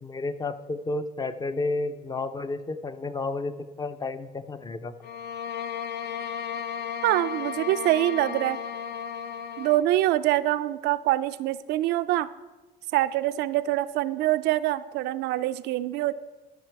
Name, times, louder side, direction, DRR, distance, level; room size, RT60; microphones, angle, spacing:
voice 1, 0.0-3.5 3.8-4.9, left 3 dB, 25° left, 11 dB, 0.5 m, -31 dB
sound 1, 5.0-9.9, left 8 dB, 75° left, 0.7 m, -34 dB
voice 2, 7.0-8.6 9.6-12.3 12.9-16.1, right 15 dB, 85° right, 12 dB, 0.4 m, -25 dB
13.5 x 5.9 x 4.6 m, 1.2 s
cardioid pair, 110°, 17 cm